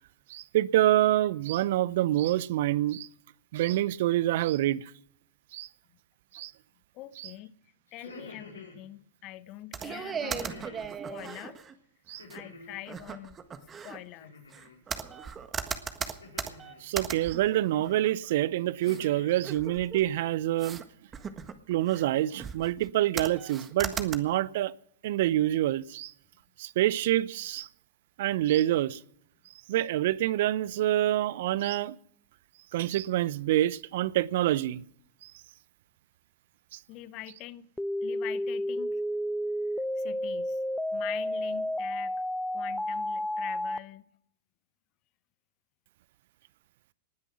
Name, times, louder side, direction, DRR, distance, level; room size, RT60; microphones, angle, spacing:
voice 1, 0.3-3.1 3.5-4.9 5.5-5.7 6.3-6.5 7.2-7.3 12.1-12.2 16.8-20.8 21.7-24.7 25.0-26.1 26.6-27.7 28.2-29.0 29.7-32.0 32.7-34.8 35.2-35.3 36.7-36.8, right 14 dB, 60° right, 0.6 m, -26 dB
voice 2, 6.9-7.5 7.9-10.6 11.1-11.6 12.3-13.4 13.8-14.4 36.9-37.7 38.0-39.0 40.0-40.6 40.9-42.1 42.5-44.0, left 16 dB, 45° left, 0.8 m, -44 dB
sound 1, 7.9-8.8 10.2-10.9 12.2-12.9 14.2-14.8 16.2-16.9 17.7-18.1 18.6-19.4, left 3 dB, 85° left, 4.9 m, -48 dB
sound 2, 9.7-11.8 12.3-12.4 12.9-14.0 14.5-18.3 18.8-19.0 19.4-20.1 20.6-20.8 21.1-22.1 22.4-22.9 23.2-24.2, right 6 dB, 25° right, 1.6 m, -37 dB
sound 3, 37.8-43.8, left 1 dB, 5° left, 0.7 m, -31 dB
19.5 x 9.9 x 6.1 m
figure-of-eight pair, 95°, 0 cm